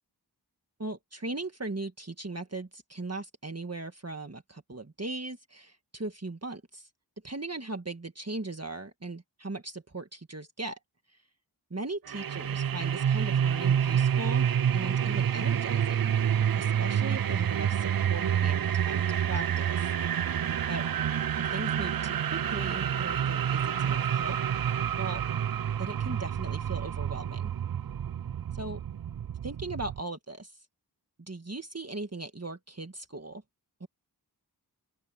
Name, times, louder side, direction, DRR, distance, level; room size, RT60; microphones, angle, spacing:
voice 1, 0.8-6.9 7.2-10.8 11.7-14.5 14.7-16.1 16.5-17.7 18.1-19.9 20.7-20.9 21.4-24.4 25.0-25.2 25.8-27.5 28.5-28.8 29.4-30.6 31.3-33.4 33.8-33.9, right 2 dB, 40° right, 1.6 m, -38 dB
sound 1, 12.1-30.0, right 9 dB, 60° right, 0.5 m, -28 dB
open air
wide cardioid pair, 50°, 40 cm